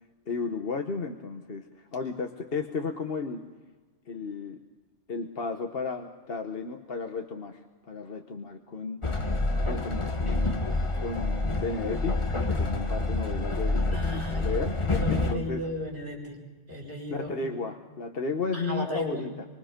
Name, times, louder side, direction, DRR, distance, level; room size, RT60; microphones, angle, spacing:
voice 1, 0.3-3.5 4.1-4.6 5.1-9.0 9.6-10.7 11.0-15.6 17.1-19.5, left 4 dB, 50° left, 4 dB, 1.3 m, -34 dB
Train, 9.0-15.3, left 2 dB, 25° left, 1.2 m, -28 dB
voice 2, 13.9-14.6 14.9-16.4 16.7-17.6 18.5-19.2, left 1 dB, 45° right, -3 dB, 7.1 m, -35 dB
26.0 x 25.0 x 5.2 m, 1.3 s
omnidirectional pair, 1.3 m